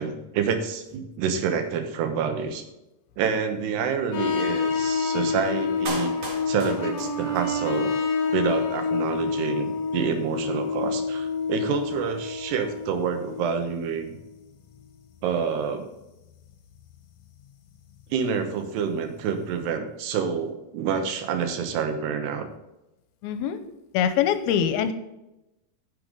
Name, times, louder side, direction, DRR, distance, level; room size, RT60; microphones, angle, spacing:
voice 1, 0.0-2.6 3.2-7.9 8.3-14.1 15.2-15.9 18.1-22.5, right 6 dB, 85° right, 7 dB, 3.3 m, -28 dB
sound 1, 4.1-14.4 14.7-14.9 18.1-18.2 18.4-18.5 18.9-19.0, left 4 dB, 65° left, 1.9 m, -28 dB
Clapping, 5.9-7.8 8.1-8.2, right 2 dB, 45° right, 2.4 m, -36 dB
voice 2, 23.2-23.6 23.9-24.9, left 9 dB, 80° left, 10 dB, 2.5 m, -23 dB
9.7 x 6.8 x 5.2 m, 0.94 s
omnidirectional pair, 4.6 m